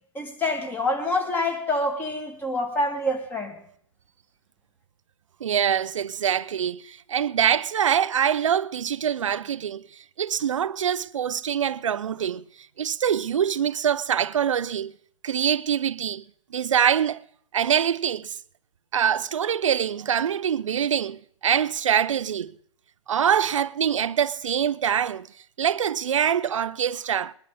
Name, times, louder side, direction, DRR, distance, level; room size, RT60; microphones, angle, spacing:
voice 1, 0.1-3.5, left 2 dB, 10° left, 2.5 m, -26 dB
voice 2, 5.4-9.8 10.2-12.4 12.8-14.9 15.2-16.2 16.5-17.2 17.5-18.3 18.9-22.5 23.1-25.3 25.6-27.3, right 8 dB, 90° right, 0.5 m, -24 dB
21.0 x 11.0 x 4.2 m
hypercardioid pair, 135°, 16 cm